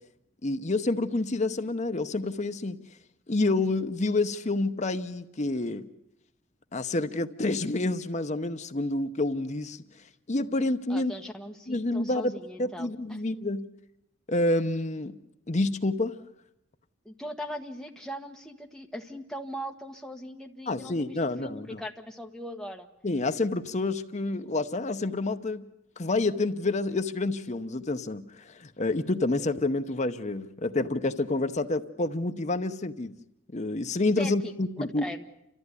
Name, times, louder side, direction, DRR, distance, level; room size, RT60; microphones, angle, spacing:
voice 1, 0.4-2.8 3.3-5.9 6.7-9.8 10.3-11.1 11.7-12.3 12.6-13.7 14.3-15.2 15.5-16.2 20.7-21.8 23.0-25.7 26.0-33.2 33.5-35.0, left 2 dB, 35° left, 0.8 m, -28 dB
voice 2, 10.9-13.2 17.0-22.9 34.2-34.5 35.0-35.2, equal, 5° left, 1.5 m, -39 dB
30.0 x 14.0 x 9.7 m
head